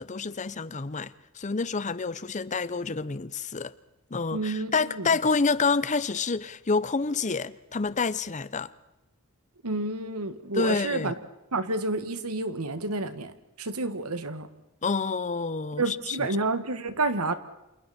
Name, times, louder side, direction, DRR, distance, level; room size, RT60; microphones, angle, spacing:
voice 1, 0.0-3.7 4.1-8.7 10.5-11.1 14.8-16.3, left 4 dB, 35° left, 0.7 m, -28 dB
voice 2, 4.3-5.1 9.6-11.1 11.5-13.3 13.6-14.5 15.8-17.3, right 3 dB, 90° right, 1.8 m, -29 dB
30.0 x 27.0 x 4.4 m
head